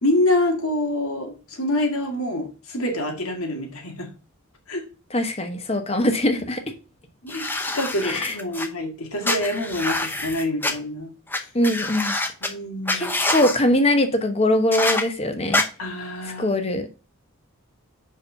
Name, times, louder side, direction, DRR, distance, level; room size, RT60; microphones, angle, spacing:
voice 1, 0.0-4.1 4.7-4.8 7.2-11.1 12.4-13.1 15.8-16.6, left 1 dB, 75° left, 2.0 m, -26 dB
voice 2, 5.1-6.6 8.0-8.4 11.5-12.2 12.9-15.6 16.4-16.9, left 1 dB, 25° left, 1.0 m, -22 dB
sound 1, 7.3-8.7 9.2-10.7 11.3-11.4 11.6-12.5 12.9-13.6 14.7-15.0 15.5-15.6, left 2 dB, 10° left, 0.7 m, -25 dB
5.6 x 4.8 x 5.4 m
head